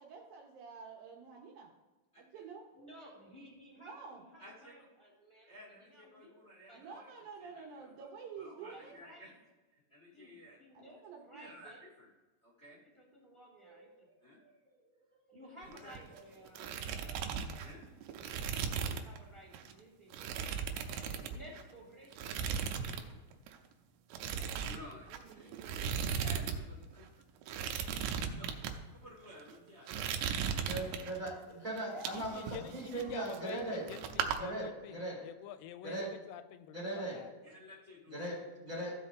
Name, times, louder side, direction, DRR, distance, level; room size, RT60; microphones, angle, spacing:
voice 1, 0.0-1.7 2.2-2.7 3.8-4.2 6.7-8.9 10.7-11.5, right 5 dB, 70° right, 0 dB, 2.3 m, -49 dB
voice 2, 2.1-2.4 4.4-4.7 5.4-7.1 7.4-8.1 8.4-9.3 9.7-10.6 11.3-11.7 12.0-12.1 12.4-12.8 14.2-14.4 15.6-15.9 17.6-17.8 24.6-25.7 26.1-27.1 28.3-28.5 29.0-29.9 37.4-38.3, left 1 dB, 55° left, -6 dB, 0.7 m, -54 dB
voice 3, 2.7-6.8 8.6-9.3 10.1-11.8 12.7-17.7 18.6-20.4 20.8-23.2 24.3-26.9 29.3-29.7 31.6-32.5 33.0-33.1 33.5-33.7, right 1 dB, 10° left, -4 dB, 1.4 m, -56 dB
sound 1, 15.6-16.2 16.4-19.2 19.5-19.7 20.1-21.7 22.1-23.1 23.3-23.6 24.1-26.6 26.8-26.9 27.4-28.7 29.3-29.5 29.9-31.3 31.8-33.6 33.9-34.4, right 7 dB, 90° right, 2.8 m, -37 dB
voice 4, 30.7-33.8 34.4-34.7 34.9-35.2 35.8-36.1 36.7-37.2 38.1-38.9, right 1 dB, 30° right, -4 dB, 1.7 m, -39 dB
voice 5, 32.1-37.3, left 11 dB, 90° left, 12 dB, 2.7 m, -48 dB
15.0 x 5.9 x 3.6 m, 1.2 s
omnidirectional pair, 4.9 m